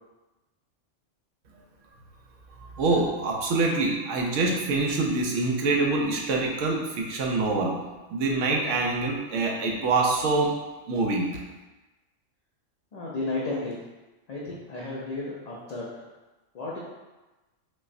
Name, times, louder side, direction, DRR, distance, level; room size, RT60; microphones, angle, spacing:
voice 1, 2.7-7.7 8.1-10.5 10.9-11.3, right 3 dB, 80° right, 0 dB, 1.0 m, -25 dB
voice 2, 12.9-13.8 14.3-15.8 16.5-16.8, left 2 dB, 55° left, -6 dB, 0.4 m, -33 dB
5.3 x 2.1 x 2.5 m, 1.1 s
omnidirectional pair, 1.3 m